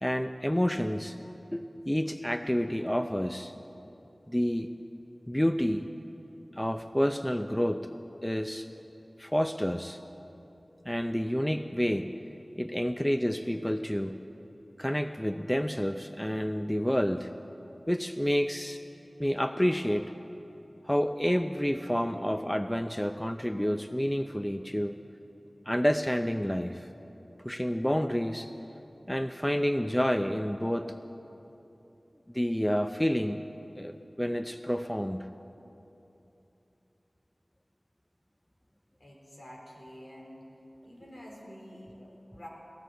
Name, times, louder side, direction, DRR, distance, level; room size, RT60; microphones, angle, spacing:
voice 1, 0.0-1.2 1.5-3.5 4.3-4.7 5.3-5.9 6.5-7.9 8.2-8.7 9.2-10.0 10.9-12.1 12.6-14.1 14.8-17.3 17.9-18.8 19.2-20.1 20.8-25.0 25.7-26.9 27.4-28.5 29.1-30.9 32.3-33.4 33.8-35.3, equal, 10° left, 8 dB, 0.5 m, -29 dB
voice 2, 39.0-40.5 40.8-42.5, equal, 75° left, -3 dB, 3.8 m, -48 dB
17.5 x 15.5 x 4.6 m, 3.0 s
wide cardioid pair, 50°, 0 cm